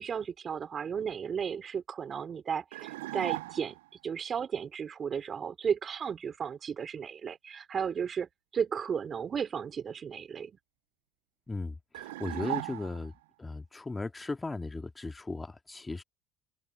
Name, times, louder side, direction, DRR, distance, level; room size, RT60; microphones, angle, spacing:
voice 1, 0.0-3.8 4.0-10.5, right 7 dB, 40° right, 4.8 m, -34 dB
sound 1, 2.7-3.9 11.9-13.2, right 18 dB, 90° right, 0.4 m, -37 dB
voice 2, 11.5-13.1 13.4-16.0, left 3 dB, 20° left, 2.0 m, -37 dB
open air
supercardioid pair, 75°, 0 cm